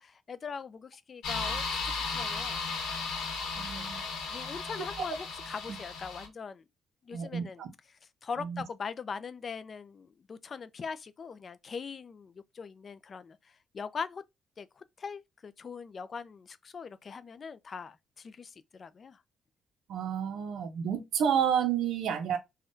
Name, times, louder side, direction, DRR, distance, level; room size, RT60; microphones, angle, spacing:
voice 1, 0.0-2.6 3.7-4.0 4.3-6.6 7.0-7.7 8.2-14.2 14.6-19.2, left 5 dB, 45° left, 0.3 m, -41 dB
sound 1, 1.2-6.3, left 4 dB, 90° left, 1.0 m, -35 dB
voice 2, 3.6-4.0 7.1-7.7 8.4-8.6 19.9-22.4, right 8 dB, 80° right, 0.6 m, -30 dB
3.5 x 2.2 x 2.6 m
cardioid pair, 90°, 0 cm